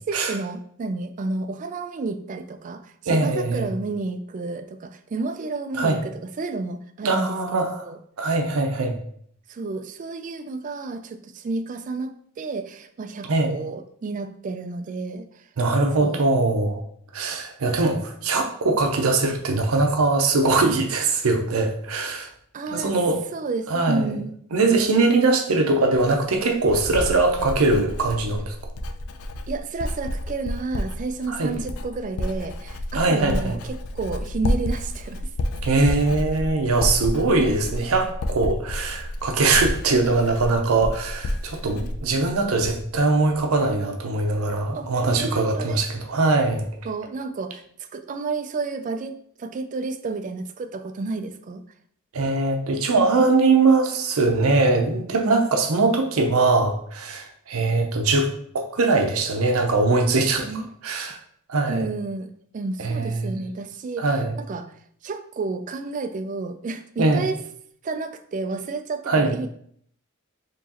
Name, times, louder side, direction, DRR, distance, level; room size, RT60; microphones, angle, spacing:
voice 1, 0.1-6.1 6.4-7.4 7.7-8.0 9.5-15.5 16.0-16.2 22.5-23.0 23.3-24.3 29.5-35.2 37.5-37.6 44.7-44.9 45.2-45.8 46.8-47.6 47.9-51.6 60.4-60.7 61.7-62.3 62.5-64.2 64.5-64.7 65.0-67.4 67.8-69.5, right 3 dB, 35° right, 9 dB, 0.3 m, -31 dB
voice 2, 3.1-3.7 5.8-6.0 7.0-7.9 8.2-8.9 13.3-13.5 15.6-16.8 17.1-22.3 22.7-23.2 23.7-24.2 24.5-28.5 31.3-31.5 32.9-33.6 35.6-46.7 52.1-60.5 60.8-61.2 61.5-61.9 62.8-63.3 64.0-64.3 67.0-67.2 69.1-69.3, right 3 dB, 85° right, 4 dB, 0.6 m, -21 dB
Writing, 25.9-43.0 43.3-43.7, left 1 dB, 90° left, 0.4 m, -30 dB
4.6 x 3.0 x 2.8 m, 0.64 s
head